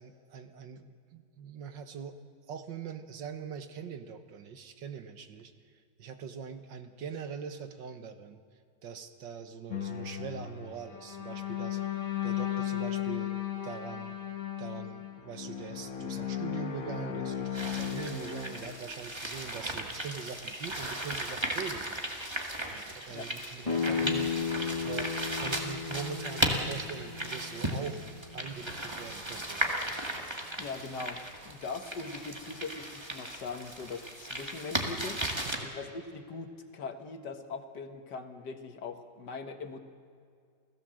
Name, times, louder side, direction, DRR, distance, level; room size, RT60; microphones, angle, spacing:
voice 1, 0.0-2.2 2.5-5.5 6.0-8.4 8.8-11.8 12.2-13.3 13.6-14.2 14.6-22.0 22.7-24.5 24.8-28.1 28.3-29.6 35.5-35.7, right 6 dB, 80° right, 9 dB, 2.0 m, -42 dB
sound 1, 9.7-18.9, left 10 dB, 50° left, 1.8 m, -36 dB
sound 2, 17.5-35.6, right 1 dB, 15° right, 1.9 m, -36 dB
sound 3, 23.6-29.2, left 6 dB, 20° left, 2.2 m, -35 dB
voice 2, 30.6-35.2 35.6-39.8, left 4 dB, 65° left, 7 dB, 2.0 m, -41 dB
29.0 x 16.0 x 7.6 m, 2.2 s
omnidirectional pair, 1.9 m